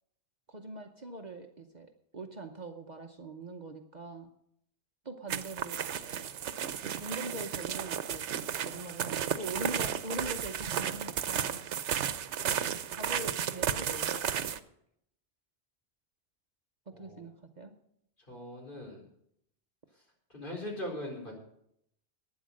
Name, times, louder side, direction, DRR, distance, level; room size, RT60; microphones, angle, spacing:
voice 1, 0.5-4.3 5.0-5.8 6.8-11.9 13.0-14.5 16.9-17.8, right 2 dB, 40° right, 5 dB, 0.9 m, -42 dB
sound 1, 5.3-14.6, right 9 dB, 90° right, 1.0 m, -33 dB
voice 2, 16.9-17.2 18.3-19.0 20.3-21.4, left 1 dB, 50° left, -1 dB, 4.4 m, -40 dB
12.0 x 9.6 x 6.4 m, 0.74 s
omnidirectional pair, 1.2 m